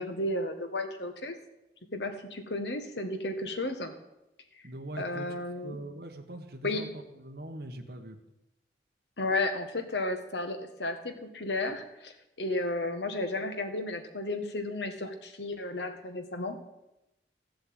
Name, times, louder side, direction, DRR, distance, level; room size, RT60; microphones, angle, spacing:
voice 1, 0.0-1.3 1.9-3.9 5.0-5.8 6.6-6.9 9.2-16.6, left 2 dB, 80° left, 7 dB, 1.7 m, -33 dB
voice 2, 4.6-8.2, right 1 dB, 65° right, 2 dB, 1.3 m, -42 dB
14.5 x 7.9 x 8.8 m, 0.91 s
head